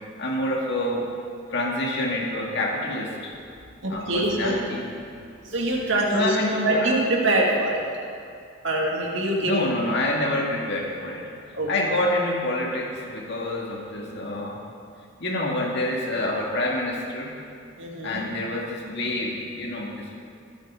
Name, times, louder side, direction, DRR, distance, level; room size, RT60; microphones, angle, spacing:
voice 1, 0.2-1.1 1.5-3.3 3.9-4.9 6.1-6.9 9.4-11.3 11.7-14.6 15.2-17.4 18.0-20.1, left 1 dB, 50° left, -2 dB, 2.0 m, -27 dB
voice 2, 3.8-4.6 5.4-6.4 6.6-7.8 8.6-9.6 11.5-11.7 17.8-18.2, right 1 dB, 60° right, -2 dB, 2.1 m, -24 dB
22.5 x 9.1 x 3.8 m, 2.4 s
head